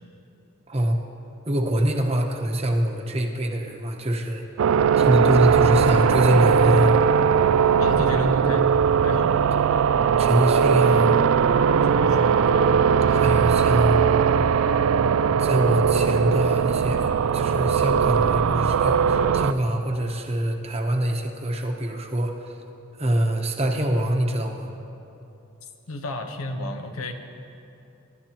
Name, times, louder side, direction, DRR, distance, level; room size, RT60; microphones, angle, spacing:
voice 1, 0.7-1.0 1.5-4.4 5.0-7.0 10.2-11.2 13.1-14.0 15.4-22.6 23.0-24.7, right 1 dB, 30° right, 3 dB, 0.9 m, -24 dB
sound 1, 4.6-19.5, right 7 dB, 75° right, 0.3 m, -19 dB
voice 2, 7.8-8.7 9.0-9.4 9.7-9.8 10.1-10.2 11.8-12.7 25.9-27.1, left 1 dB, 85° left, 5 dB, 1.1 m, -31 dB
25.0 x 11.5 x 3.0 m, 2.8 s
head